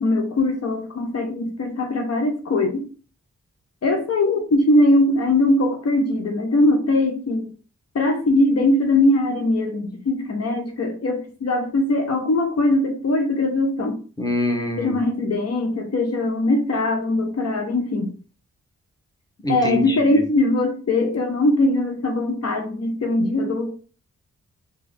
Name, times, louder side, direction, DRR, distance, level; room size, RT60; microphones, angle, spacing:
voice 1, 0.0-2.9 3.8-7.5 7.9-14.0 14.8-18.1 19.5-23.7, left 2 dB, 60° left, 0.7 m, -21 dB
voice 2, 14.2-14.9 19.4-20.2, left 1 dB, 15° left, 1.1 m, -24 dB
3.3 x 2.4 x 3.8 m
cardioid pair, 50°, 29 cm